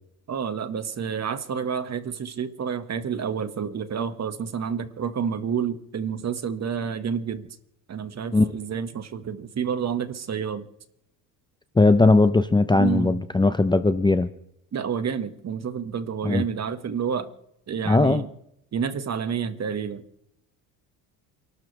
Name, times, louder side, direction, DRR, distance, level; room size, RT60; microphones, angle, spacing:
voice 1, 0.3-7.6 7.9-10.7 12.7-13.2 14.7-17.3 17.7-18.3 18.7-20.0, right 7 dB, 40° right, 10 dB, 1.8 m, -29 dB
voice 2, 11.8-14.3 16.2-16.4 17.9-18.2, left 3 dB, 10° left, 12 dB, 0.8 m, -19 dB
29.0 x 12.5 x 3.5 m, 0.75 s
supercardioid pair, 95°, 42 cm